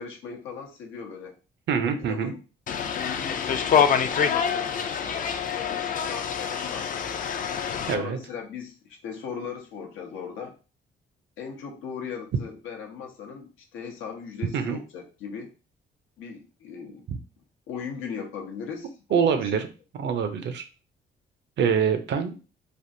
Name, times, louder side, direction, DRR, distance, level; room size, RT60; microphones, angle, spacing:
voice 1, 0.0-1.4 2.0-2.4 2.9-4.7 5.5-10.5 11.4-15.5 16.2-17.0 17.7-18.9 19.3-19.6, left 6 dB, 90° left, 2 dB, 0.8 m, -38 dB
voice 2, 1.7-2.3 7.9-8.2 14.5-14.8 17.1-17.2 19.1-19.7 20.0-20.7 21.6-22.5, right 7 dB, 65° right, 9 dB, 0.6 m, -25 dB
sound 1, 2.7-8.0, left 7 dB, 45° left, 0.4 m, -26 dB
3.4 x 2.4 x 2.6 m, 0.34 s
cardioid pair, 90°, 20 cm